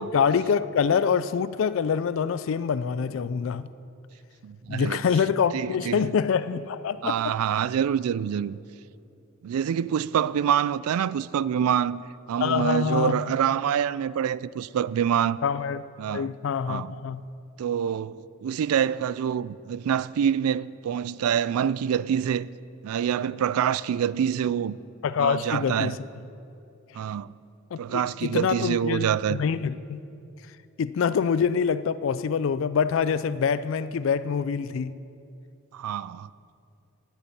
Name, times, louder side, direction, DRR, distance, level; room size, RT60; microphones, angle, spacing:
voice 1, 0.0-3.7 4.7-7.4 12.4-13.2 15.4-15.8 16.1-17.2 25.0-26.0 27.7-30.0 30.8-35.0, left 6 dB, 60° left, 0.3 m, -25 dB
voice 2, 4.4-5.0 5.5-6.1 7.0-8.6 9.4-12.0 12.3-15.4 16.0-16.3 16.7-16.9 17.6-22.5 22.8-24.8 25.2-26.0 26.9-27.3 27.8-29.4 35.7-36.3, right 8 dB, 85° right, 0.3 m, -26 dB
10.0 x 8.2 x 8.5 m
head